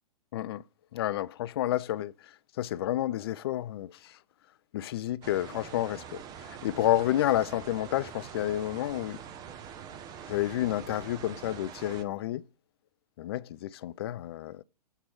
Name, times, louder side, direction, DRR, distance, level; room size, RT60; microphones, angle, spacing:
voice 1, 0.3-0.6 0.9-4.2 4.7-9.2 10.3-12.4 13.2-14.6, left 13 dB, 40° left, 0.4 m, -30 dB
sound 1, 5.2-12.0, right 8 dB, 20° right, 0.6 m, -44 dB
7.7 x 4.5 x 5.7 m
figure-of-eight pair, 115°, 21 cm